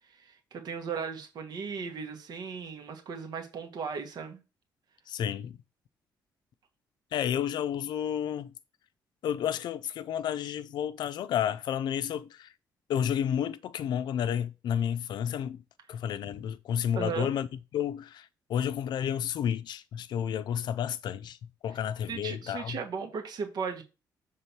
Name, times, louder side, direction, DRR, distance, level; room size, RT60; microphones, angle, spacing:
voice 1, 0.1-4.4 16.9-17.3 22.1-23.8, right 6 dB, 65° right, 1.4 m, -36 dB
voice 2, 5.1-5.6 7.1-8.5 9.2-12.5 12.9-15.6 15.9-17.5 17.7-21.4 21.6-22.8, left 9 dB, 75° left, 0.5 m, -31 dB
6.8 x 3.6 x 4.5 m
cardioid pair, 115°, 7 cm